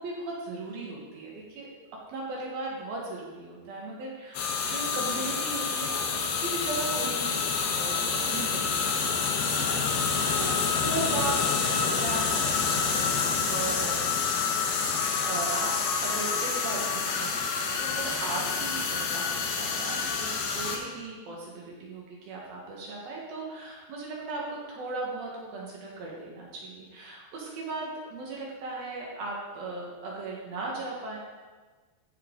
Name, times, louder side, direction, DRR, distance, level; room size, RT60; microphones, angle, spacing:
voice 1, 0.0-1.7 2.1-14.0 15.2-31.2, right 2 dB, 65° right, -3 dB, 2.9 m, -37 dB
sound 1, 4.3-20.8, left 5 dB, 70° left, 2.9 m, -28 dB
14.5 x 5.8 x 3.8 m, 1.4 s
omnidirectional pair, 5.3 m